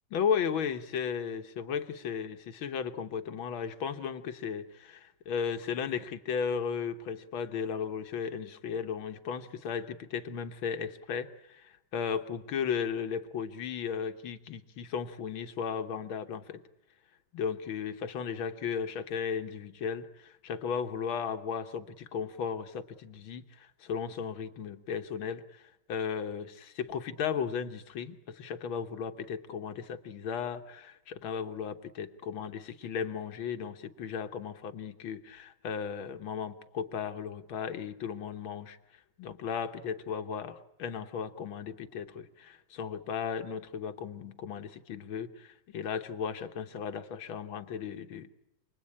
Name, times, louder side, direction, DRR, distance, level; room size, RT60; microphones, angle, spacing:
voice 1, 0.1-16.6 17.3-38.8 39.2-48.3, left 7 dB, 85° left, 8 dB, 2.0 m, -35 dB
28.5 x 21.0 x 8.7 m, 0.86 s
omnidirectional pair, 2.2 m